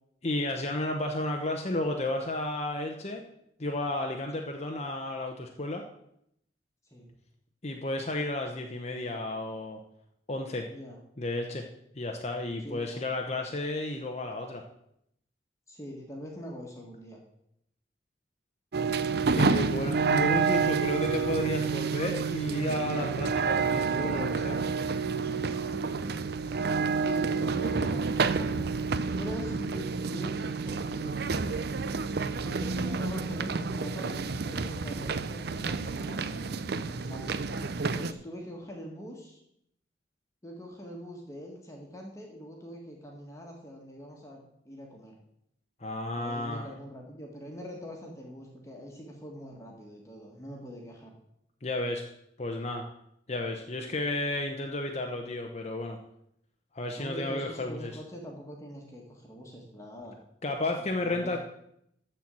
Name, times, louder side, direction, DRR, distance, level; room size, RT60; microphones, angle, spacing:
voice 1, 0.2-3.2 3.6-5.8 7.6-9.8 10.3-10.7 11.2-11.7 12.0-14.6 19.3-24.6 45.8-46.7 51.6-52.1 52.4-52.9 53.3-56.0 56.7-57.9 60.4-61.4, left 2 dB, 35° left, 3 dB, 0.8 m, -32 dB
voice 2, 10.7-11.0 12.6-13.1 15.7-17.2 27.0-28.7 29.2-31.8 32.4-37.5 37.9-39.4 40.4-44.4 44.6-45.2 46.1-51.1 57.0-60.2 60.8-61.4, equal, 15° left, 0 dB, 1.6 m, -43 dB
sound 1, 18.7-38.1, right 5 dB, 60° right, 0.5 m, -29 dB
13.5 x 4.5 x 7.6 m, 0.76 s
head